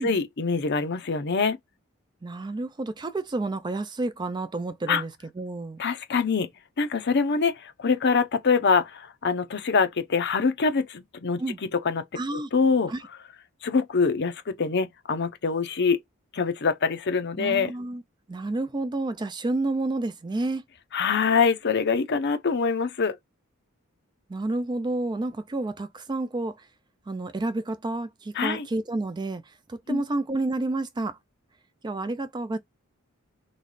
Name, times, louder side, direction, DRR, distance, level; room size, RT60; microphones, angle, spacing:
voice 1, 0.0-1.6 4.9-5.0 5.8-6.5 6.8-11.4 11.8-12.0 12.3-12.9 13.6-16.0 16.3-17.7 20.9-23.2 28.4-28.7 29.9-30.0, left 5 dB, 55° left, 0.7 m, -24 dB
voice 2, 2.2-5.8 11.4-11.6 12.1-12.5 12.9-13.0 17.4-18.0 18.3-20.6 24.3-26.7 27.1-31.2 31.8-32.6, right 2 dB, 20° right, 0.4 m, -30 dB
3.1 x 3.1 x 4.0 m
head